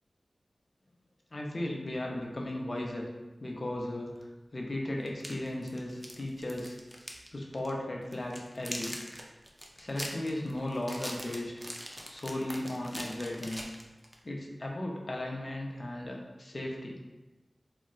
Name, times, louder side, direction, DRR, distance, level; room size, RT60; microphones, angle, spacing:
voice 1, 1.3-3.1 3.4-4.1 4.5-6.8 7.3-8.9 9.8-11.5 12.1-13.6 14.2-17.0, left 1 dB, 45° left, -1 dB, 0.5 m, -36 dB
sound 1, 4.2-4.3 5.1-7.3 7.5-7.7 8.1-14.2, equal, 5° right, 0.4 m, -42 dB
3.8 x 2.1 x 2.3 m, 1.1 s
wide cardioid pair, 75°, 0 cm